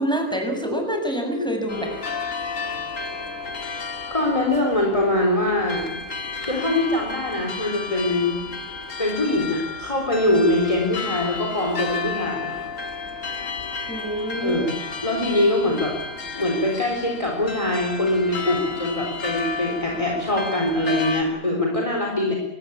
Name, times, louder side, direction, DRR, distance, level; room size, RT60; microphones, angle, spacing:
voice 1, 0.0-2.2 13.9-14.6 21.3-21.6, equal, 5° left, 3 dB, 6.4 m, -27 dB
sound 1, 1.7-21.2, left 4 dB, 90° left, 2.4 m, -32 dB
voice 2, 4.1-6.0 6.4-8.4 9.0-12.5 14.4-14.7 15.0-16.0 16.3-22.4, left 1 dB, 25° left, 0 dB, 3.9 m, -23 dB
24.5 x 19.0 x 8.6 m, 0.93 s
omnidirectional pair, 1.3 m